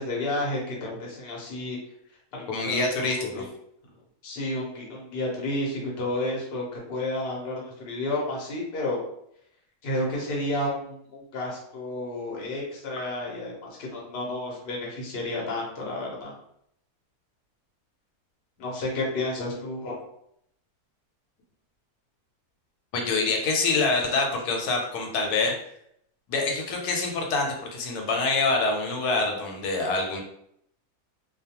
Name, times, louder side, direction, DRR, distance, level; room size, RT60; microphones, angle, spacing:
voice 1, 0.0-1.8 2.3-3.4 4.2-9.0 9.8-16.3 18.6-20.0, left 1 dB, 50° left, -3 dB, 0.8 m, -31 dB
voice 2, 2.5-3.4 22.9-25.5 26.3-30.2, left 3 dB, 85° left, 1 dB, 1.1 m, -26 dB
2.3 x 2.2 x 2.8 m, 0.72 s
omnidirectional pair, 1.6 m